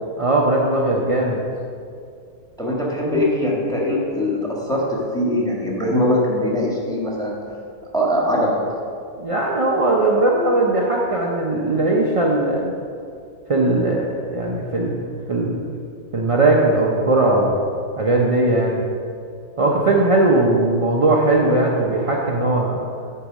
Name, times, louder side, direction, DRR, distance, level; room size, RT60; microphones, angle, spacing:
voice 1, 0.2-1.4 9.2-12.7 13.5-15.0 15.3-15.7 16.1-17.6 18.0-18.9 19.6-22.8, right 2 dB, 45° right, -2 dB, 0.4 m, -19 dB
voice 2, 2.6-7.4 7.9-8.6, left 1 dB, 5° left, -3 dB, 1.4 m, -21 dB
8.4 x 4.6 x 6.2 m, 2.4 s
omnidirectional pair, 1.5 m